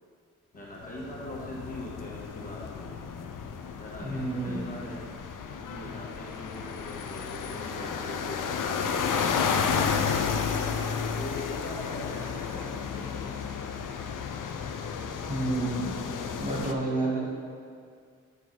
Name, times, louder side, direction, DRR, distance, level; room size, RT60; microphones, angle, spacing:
voice 1, 0.5-3.0 3.8-5.0 5.6-9.8 10.7-13.3 16.8-17.3, left 1 dB, 25° left, -5 dB, 1.7 m, -42 dB
sound 1, 0.7-16.7, left 6 dB, 75° left, 0.6 m, -32 dB
voice 2, 4.0-4.6 15.3-15.9 16.4-17.2, right 2 dB, 25° right, -5 dB, 1.8 m, -29 dB
9.7 x 4.6 x 4.1 m, 2.1 s
cardioid pair, 65°, 31 cm